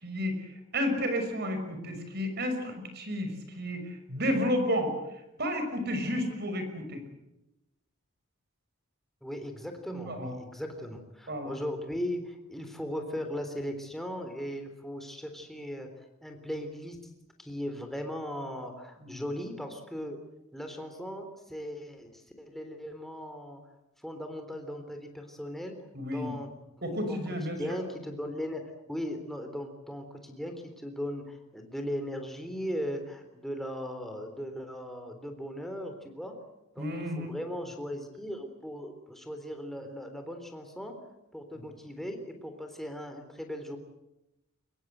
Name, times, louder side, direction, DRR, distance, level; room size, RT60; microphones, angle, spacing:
voice 1, 0.0-4.9 5.4-7.0 9.9-10.4 11.3-11.5 19.0-19.2 25.9-26.3 26.8-27.6 36.8-37.3, equal, 50° right, 7 dB, 6.1 m, -31 dB
voice 2, 9.2-15.9 16.2-17.0 17.4-20.2 20.5-23.6 24.0-25.8 26.1-26.5 26.8-27.2 27.6-36.3 36.8-41.0 41.3-43.8, equal, ahead, 5 dB, 3.6 m, -38 dB
24.5 x 21.5 x 8.1 m, 0.92 s
head